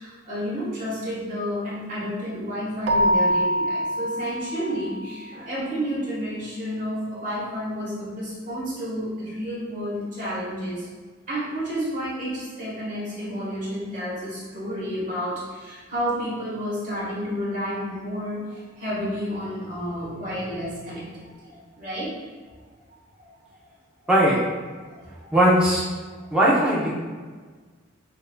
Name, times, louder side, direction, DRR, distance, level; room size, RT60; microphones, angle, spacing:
voice 1, 0.0-10.9 11.3-22.1 23.2-23.3 24.9-25.3, equal, 40° right, -7 dB, 1.4 m, -31 dB
Keyboard (musical), 2.9-5.3, equal, 55° right, 0.3 m, -24 dB
voice 2, 24.1-24.4 25.3-25.9 26.3-26.9, right 1 dB, 5° right, -7 dB, 0.7 m, -19 dB
6.2 x 2.6 x 2.2 m, 1.5 s
head